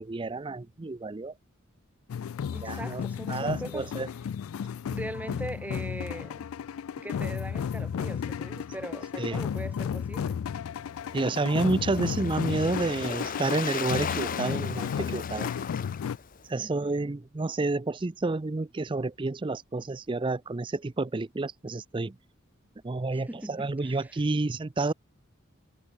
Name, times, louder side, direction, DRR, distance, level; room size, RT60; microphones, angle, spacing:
voice 1, 0.0-1.3 2.6-3.0 3.3-4.1 9.2-9.4 11.1-15.5 16.5-22.2 22.8-24.9, right 3 dB, 25° right, 0.4 m, -30 dB
sound 1, 2.1-16.2, left 7 dB, 85° left, 0.3 m, -33 dB
voice 2, 2.5-3.9 4.9-6.4 7.0-10.4 16.6-17.1 23.1-24.1, right 1 dB, 10° right, 1.3 m, -41 dB
Waves surf, 10.8-16.5, left 6 dB, 40° left, 0.7 m, -37 dB
head